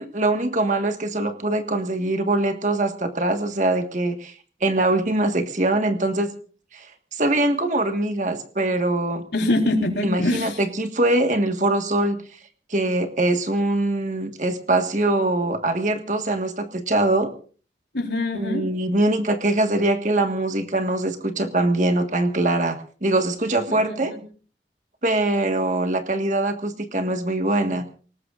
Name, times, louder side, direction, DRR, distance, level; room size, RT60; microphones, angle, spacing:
voice 1, 0.0-4.3 4.6-6.3 6.7-6.9 7.1-9.2 10.0-12.2 12.7-17.3 18.3-24.1 25.0-27.8, right 2 dB, 45° right, 6 dB, 1.6 m, -23 dB
voice 2, 9.3-10.6 17.9-18.7 23.7-24.2, left 2 dB, 80° left, 2 dB, 3.9 m, -24 dB
28.0 x 19.0 x 2.5 m, 0.41 s
head